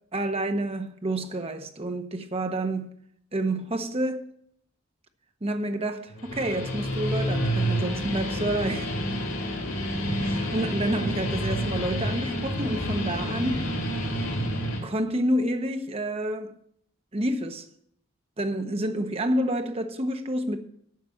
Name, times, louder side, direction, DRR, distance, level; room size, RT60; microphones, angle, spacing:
voice 1, 0.1-2.9 3.3-4.2 5.4-8.9 10.2-13.7 14.8-16.6 17.1-17.7 18.4-20.6, right 1 dB, 30° right, 0.8 m, -29 dB
Guitar, 6.1-14.8, equal, 85° left, 2.7 m, -29 dB
9.5 x 6.0 x 7.6 m
head